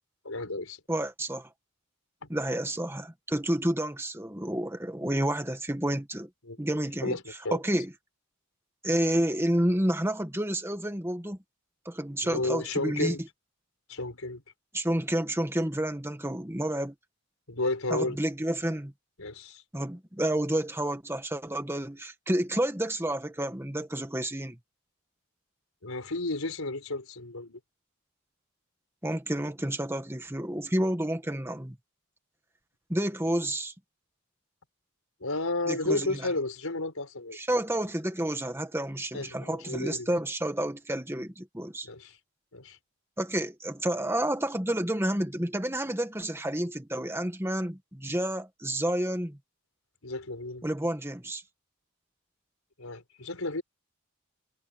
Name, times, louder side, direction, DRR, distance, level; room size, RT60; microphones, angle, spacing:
voice 1, 0.2-0.8 2.2-2.3 6.4-6.6 7.0-7.6 12.2-13.2 13.9-14.4 17.5-18.2 19.2-19.6 25.8-27.6 35.2-37.4 39.1-40.2 41.8-42.2 42.5-42.8 50.0-50.6 52.8-53.6, left 2 dB, 85° left, 4.6 m, -32 dB
voice 2, 0.9-1.5 2.3-6.3 6.6-7.2 7.5-7.9 8.8-11.4 11.9-13.2 14.7-16.9 17.9-18.9 19.7-24.6 29.0-31.8 32.9-33.7 35.7-36.2 37.3-41.9 43.2-49.4 50.6-51.4, right 1 dB, 10° right, 1.8 m, -30 dB
head